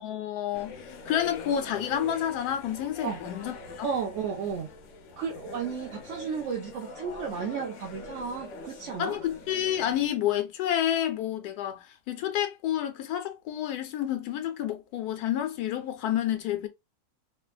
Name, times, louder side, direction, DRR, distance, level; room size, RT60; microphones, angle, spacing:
voice 1, 0.0-3.9 9.0-16.7, left 11 dB, 80° left, 1.1 m, -29 dB
sound 1, 0.5-10.1, left 2 dB, 65° left, 0.8 m, -43 dB
voice 2, 3.8-4.7 5.2-9.2, right 6 dB, 65° right, 0.8 m, -33 dB
3.3 x 2.2 x 2.2 m
omnidirectional pair, 1.6 m